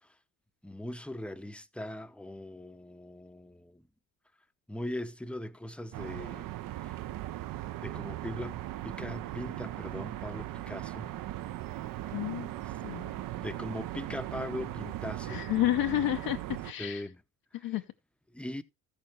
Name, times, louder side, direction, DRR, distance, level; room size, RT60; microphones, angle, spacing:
voice 1, 0.6-3.8 4.7-6.5 6.8-7.0 7.8-11.1 12.8-13.0 13.4-15.5 16.8-17.2 17.6-17.7 18.3-18.6, left 1 dB, 5° left, 0.7 m, -40 dB
sound 1, 5.9-16.7, right 15 dB, 55° right, 0.6 m, -38 dB
voice 2, 12.1-12.5 12.8-13.2 15.3-17.1 17.6-17.8, left 14 dB, 60° left, 0.7 m, -30 dB
14.0 x 6.6 x 3.1 m
supercardioid pair, 70°, 40 cm